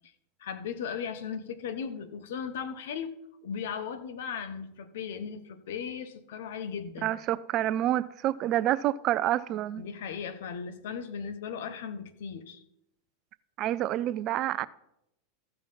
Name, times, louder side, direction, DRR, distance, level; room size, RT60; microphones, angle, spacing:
voice 1, 0.4-3.1 3.4-7.1 9.8-12.6, left 7 dB, 75° left, 1.2 m, -37 dB
voice 2, 7.0-9.8 13.6-14.7, right 13 dB, 45° right, 0.5 m, -28 dB
15.0 x 5.6 x 5.7 m
hypercardioid pair, 120°, 0 cm